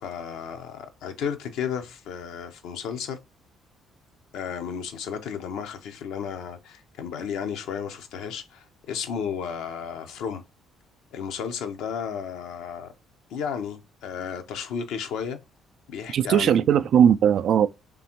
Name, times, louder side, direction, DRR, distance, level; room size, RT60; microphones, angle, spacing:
voice 1, 0.0-3.2 4.3-10.4 11.1-12.9 13.3-15.4 15.9-16.6, left 7 dB, 70° left, 0.6 m, -33 dB
voice 2, 16.1-17.7, right 9 dB, 60° right, 0.3 m, -19 dB
3.7 x 3.4 x 2.9 m
hypercardioid pair, 50°, 0 cm